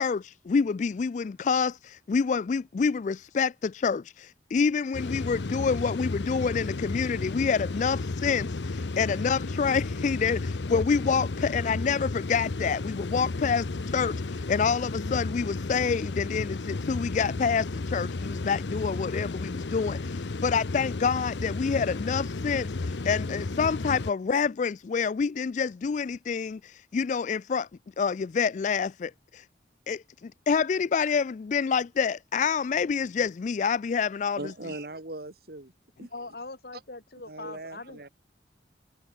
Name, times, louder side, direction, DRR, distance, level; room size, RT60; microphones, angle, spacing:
voice 1, 0.0-27.7 28.0-29.4 29.9-34.4, left 5 dB, 45° left, 0.3 m, -27 dB
sound 1, 4.9-24.1, left 3 dB, 90° left, 0.8 m, -33 dB
voice 2, 34.4-35.7 36.0-36.1 37.3-38.1, right 2 dB, 60° right, 2.3 m, -39 dB
voice 3, 36.0-38.1, left 3 dB, 60° left, 2.1 m, -42 dB
head